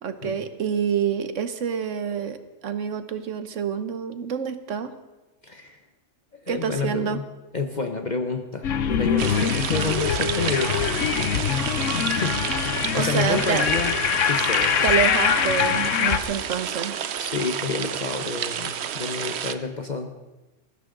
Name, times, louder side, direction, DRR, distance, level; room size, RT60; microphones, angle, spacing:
voice 1, 0.0-2.4 2.6-4.9 6.5-7.2 13.0-13.7 14.8-16.9, right 7 dB, 80° right, 10 dB, 1.4 m, -27 dB
voice 2, 5.4-5.8 6.4-7.2 7.5-10.9 12.1-13.9 14.2-14.8 17.2-20.1, left 4 dB, 40° left, 5 dB, 1.0 m, -29 dB
sound 1, 8.6-16.2, left 8 dB, 85° left, 1.2 m, -23 dB
sound 2, 9.2-19.6, right 9 dB, 65° right, 0.9 m, -30 dB
19.5 x 15.0 x 3.9 m, 1.1 s
omnidirectional pair, 1.3 m